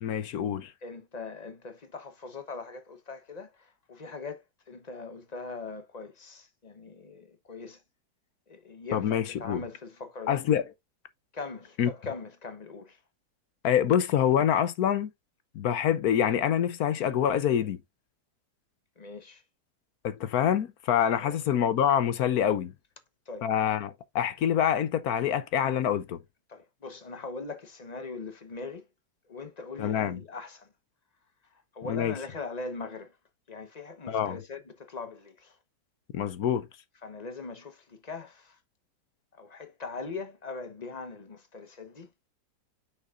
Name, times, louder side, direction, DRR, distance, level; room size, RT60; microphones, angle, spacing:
voice 1, 0.0-0.7 8.9-9.6 10.3-10.6 11.8-11.9 13.6-15.1 15.5-17.8 20.0-22.7 23.4-26.2 29.8-30.2 31.9-32.1 34.1-34.4 36.1-36.7, left 9 dB, 70° left, 1.2 m, -26 dB
voice 2, 0.8-7.8 8.5-10.4 11.3-13.0 19.0-19.4 21.1-21.4 23.3-23.5 26.5-28.9 29.3-30.7 31.7-33.1 33.5-35.6 37.0-38.6 39.4-42.1, left 4 dB, 30° left, 1.0 m, -41 dB
8.1 x 6.2 x 2.4 m
omnidirectional pair, 1.8 m